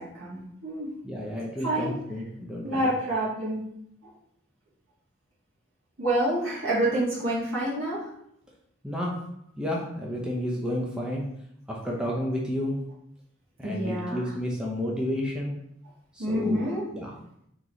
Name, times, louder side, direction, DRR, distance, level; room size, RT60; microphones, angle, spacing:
voice 1, 0.0-0.9 1.6-2.0 2.6-3.6 6.0-8.1 13.6-14.3 16.2-16.8, right 1 dB, 80° right, -6 dB, 1.7 m, -28 dB
voice 2, 1.0-2.8 8.8-9.2 9.6-11.2 11.7-12.8 13.6-15.5 16.1-16.6 16.9-17.1, left 1 dB, 5° right, -3 dB, 0.6 m, -31 dB
3.9 x 3.8 x 2.9 m, 0.73 s
head